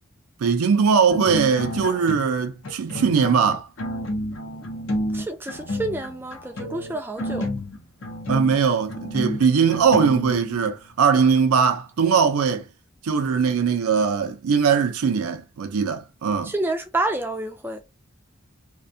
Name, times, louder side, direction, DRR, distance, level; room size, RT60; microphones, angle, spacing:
voice 1, 0.4-3.7 8.3-12.7 13.0-16.5, right 6 dB, 90° right, 0.4 m, -20 dB
sound 1, 1.1-2.4 2.6-10.8, equal, 60° left, 0.7 m, -30 dB
voice 2, 5.1-7.5 16.4-17.8, right 2 dB, 10° right, 0.3 m, -28 dB
2.4 x 2.2 x 2.6 m
head